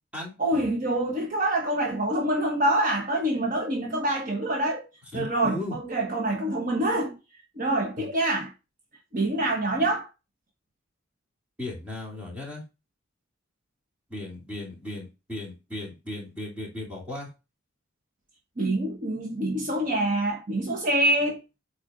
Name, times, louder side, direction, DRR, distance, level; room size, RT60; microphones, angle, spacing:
voice 1, 0.4-4.8 5.1-7.2 7.6-8.5 9.1-10.1 18.6-21.4, right 1 dB, 40° right, 1.3 m, -26 dB
voice 2, 5.1-5.8 8.0-8.1 11.6-12.6 14.1-17.3, left 2 dB, 5° right, 2.9 m, -36 dB
8.6 x 4.3 x 3.8 m
head